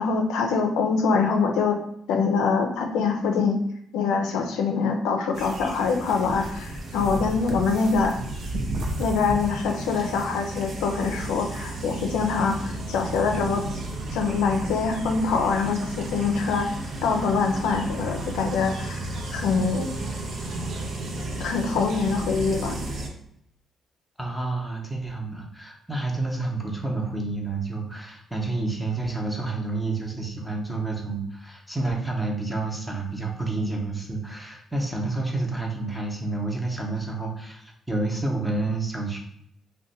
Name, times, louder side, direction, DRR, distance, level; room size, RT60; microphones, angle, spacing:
voice 1, 0.0-1.8 2.1-3.6 3.9-8.2 9.0-13.7 14.1-16.7 17.0-19.9 21.4-22.8, left 5 dB, 90° left, 4 dB, 0.4 m, -24 dB
sound 1, 5.3-23.1, right 1 dB, 60° right, 0.5 m, -33 dB
voice 2, 24.2-39.2, right 3 dB, 5° right, 0 dB, 0.7 m, -29 dB
2.6 x 2.1 x 3.9 m, 0.74 s
cardioid pair, 90°, 0 cm